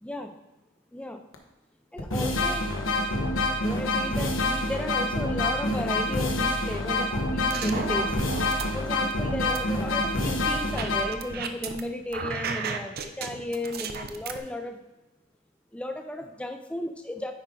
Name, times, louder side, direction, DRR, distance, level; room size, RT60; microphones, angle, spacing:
voice 1, 0.0-0.3 0.9-1.2 1.9-2.6 3.6-8.1 8.7-14.8 15.7-17.3, left 1 dB, 5° left, 5 dB, 0.4 m, -34 dB
sound 1, 1.3-1.4 2.0-11.0, left 2 dB, 80° left, 1.2 m, -27 dB
sound 2, 7.3-8.7 9.1-11.8 12.1-14.4, right 5 dB, 50° right, 0.6 m, -34 dB
9.7 x 5.0 x 3.7 m, 1.1 s
head